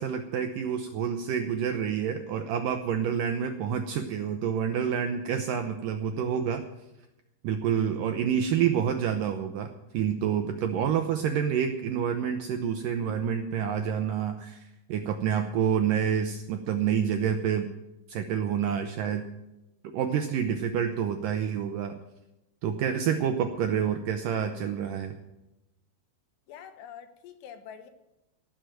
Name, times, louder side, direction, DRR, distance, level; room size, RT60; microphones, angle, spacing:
voice 1, 0.0-6.6 7.4-17.7 18.1-19.3 19.9-21.9 22.6-25.1, right 8 dB, 80° right, 6 dB, 2.0 m, -28 dB
voice 2, 26.5-27.9, left 8 dB, 85° left, 8 dB, 3.3 m, -45 dB
17.5 x 6.5 x 9.0 m, 0.93 s
omnidirectional pair, 4.7 m